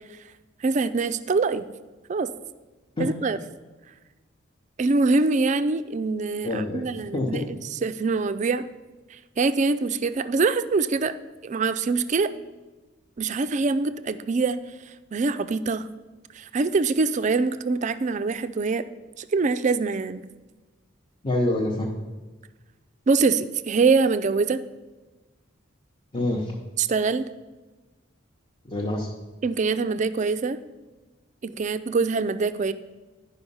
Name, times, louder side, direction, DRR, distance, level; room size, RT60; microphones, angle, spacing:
voice 1, 0.6-1.7 2.1-2.3 3.0-3.4 4.8-7.4 7.8-8.7 9.4-11.1 11.4-12.3 13.2-14.6 15.1-15.9 16.4-18.8 19.2-20.2 23.1-24.6 26.8-27.3 29.4-30.6 31.4-32.7, right 4 dB, 35° right, 12 dB, 0.3 m, -24 dB
voice 2, 6.4-6.8 7.1-7.4 21.2-21.9 26.1-26.5 28.6-29.1, left 1 dB, 25° left, -2 dB, 0.8 m, -26 dB
10.5 x 5.2 x 5.5 m, 1.2 s
head